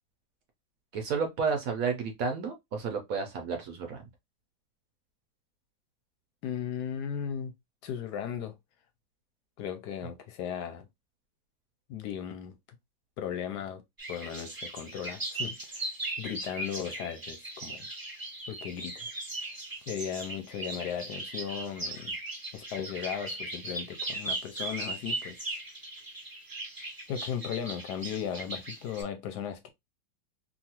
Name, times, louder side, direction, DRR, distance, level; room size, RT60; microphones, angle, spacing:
voice 1, 0.9-4.0, right 5 dB, 65° right, 0.8 m, -31 dB
voice 2, 6.4-7.5 7.8-8.5 9.6-10.9 11.9-12.6 13.2-13.8 14.1-15.9 16.2-17.9 18.5-19.1 19.9-22.2 22.5-25.5 27.1-29.7, left 8 dB, 75° left, 1.0 m, -36 dB
sound 1, 14.0-29.0, right 2 dB, 30° right, 0.4 m, -38 dB
3.0 x 2.4 x 2.8 m
omnidirectional pair, 2.0 m